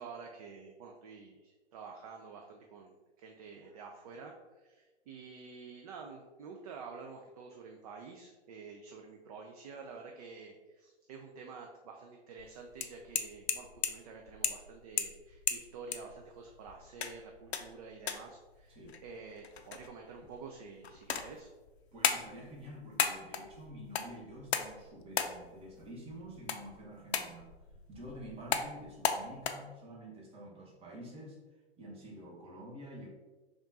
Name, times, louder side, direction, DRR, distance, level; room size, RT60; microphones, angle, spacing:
voice 1, 0.0-21.5, right 5 dB, 35° right, 2 dB, 0.4 m, -49 dB
sound 1, 12.4-29.5, left 7 dB, 70° left, 0.5 m, -38 dB
voice 2, 21.9-27.5 27.9-31.4 31.8-33.1, equal, 20° right, -2 dB, 0.9 m, -48 dB
3.5 x 2.4 x 3.9 m, 1.2 s
hypercardioid pair, 115°, 33 cm